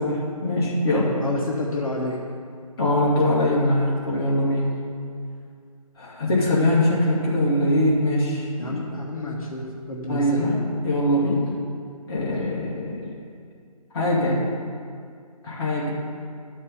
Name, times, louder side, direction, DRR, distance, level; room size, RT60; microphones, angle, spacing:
voice 1, 0.0-1.1 2.8-4.7 6.0-8.8 10.1-11.4 12.1-13.0 13.9-14.4 15.4-15.9, left 1 dB, 40° left, -7 dB, 2.3 m, -22 dB
voice 2, 1.2-2.2 8.6-10.4, left 2 dB, 65° left, -3 dB, 1.4 m, -29 dB
12.0 x 5.4 x 5.6 m, 2.3 s
figure-of-eight pair, 145°, 19 cm